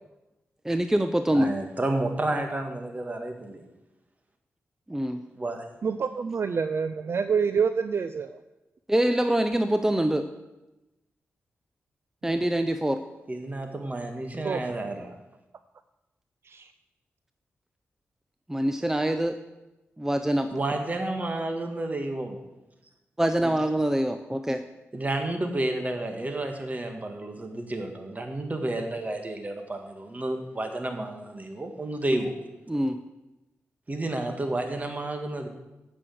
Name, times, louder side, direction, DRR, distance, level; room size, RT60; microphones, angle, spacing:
voice 1, 0.6-1.5 4.9-5.2 8.9-10.3 12.2-13.0 18.5-19.4 20.0-20.5 23.2-24.6 32.7-33.0, right 1 dB, 10° right, 8 dB, 0.7 m, -24 dB
voice 2, 1.3-3.6 5.3-5.7 13.3-15.1 20.5-22.4 23.4-23.5 24.9-32.3 33.9-35.5, right 2 dB, 30° right, 5 dB, 1.9 m, -31 dB
voice 3, 5.8-8.4 14.4-14.6 16.5-16.7, right 6 dB, 55° right, 11 dB, 0.5 m, -27 dB
8.9 x 6.3 x 7.9 m, 1.0 s
cardioid pair, 60°, 5 cm